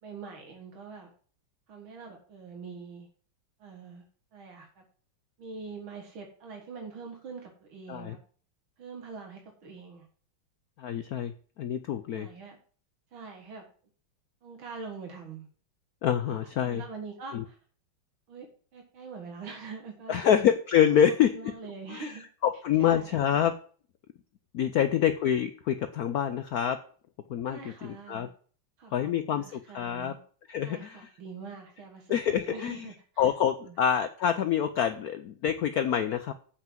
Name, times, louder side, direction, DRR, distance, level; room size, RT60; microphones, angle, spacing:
voice 1, 0.0-1.1 1.7-3.1 3.6-4.0 4.3-4.8 5.4-8.2 8.8-10.1 12.1-12.6 13.1-13.6 14.4-15.5 16.2-17.6 18.3-20.3 21.3-22.2 22.8-23.3 27.5-28.3 28.8-30.2 30.6-33.3 33.7-33.8, right 4 dB, 85° right, 2 dB, 2.4 m, -44 dB
voice 2, 10.8-12.3 16.0-16.8 17.3-17.4 20.1-21.3 21.9-22.1 22.4-23.5 24.5-26.8 27.3-28.3 28.9-30.1 30.5-31.1 32.1-32.9 33.2-36.3, left 9 dB, 65° left, 9 dB, 0.9 m, -26 dB
8.0 x 5.9 x 7.4 m, 0.44 s
omnidirectional pair, 2.1 m